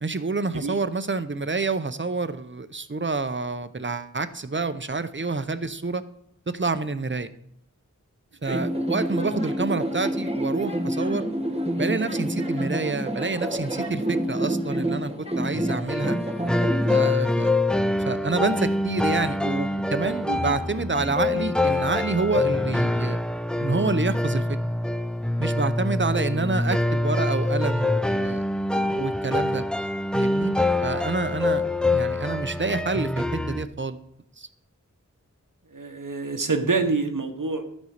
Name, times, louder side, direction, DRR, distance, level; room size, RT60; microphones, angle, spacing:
voice 1, 0.0-6.0 6.5-7.3 8.4-11.3 11.8-16.2 16.9-17.5 18.1-23.2 23.6-24.4 25.4-28.4 28.9-29.6 30.1-30.5 30.8-31.6 31.9-34.0 34.4-34.5, right 3 dB, 40° right, 12 dB, 0.7 m, -28 dB
sound 1, 8.5-17.1, right 1 dB, 20° right, 1.4 m, -28 dB
sound 2, 15.5-33.7, left 2 dB, 5° left, 0.4 m, -25 dB
voice 2, 28.7-29.1 35.7-37.6, right 3 dB, 90° right, 6 dB, 1.1 m, -27 dB
11.5 x 5.4 x 6.5 m, 0.73 s
wide cardioid pair, 40°, 31 cm